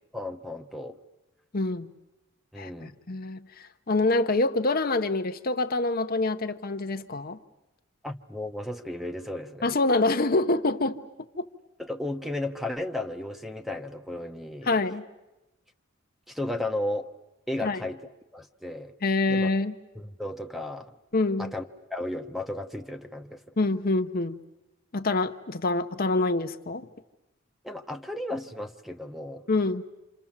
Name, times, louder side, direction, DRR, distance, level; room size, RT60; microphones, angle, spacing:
voice 1, 0.1-1.0 2.5-2.9 8.0-9.7 11.8-14.7 16.3-17.1 17.5-18.0 18.3-18.9 19.3-19.5 19.9-20.9 21.4-23.4 27.6-29.5, left 1 dB, ahead, 7 dB, 1.0 m, -34 dB
voice 2, 1.5-1.9 2.6-7.4 9.6-11.0 11.4-11.5 14.7-15.0 17.6-17.8 19.0-19.7 21.1-21.5 23.6-24.4 24.9-26.9 29.5-29.8, left 2 dB, 45° left, 8 dB, 0.9 m, -26 dB
28.5 x 27.0 x 7.4 m, 1.0 s
head